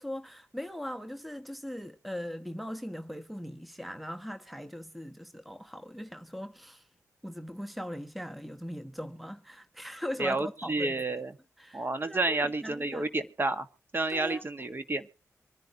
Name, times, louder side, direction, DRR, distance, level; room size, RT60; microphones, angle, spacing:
voice 1, 0.0-6.8 7.2-11.0 11.6-13.1 14.1-14.4, equal, ahead, 1.1 m, -40 dB
voice 2, 10.2-11.3 11.7-13.7 13.9-15.1, right 2 dB, 35° right, 1.7 m, -30 dB
25.0 x 10.5 x 2.9 m
cardioid pair, 60°, 6 cm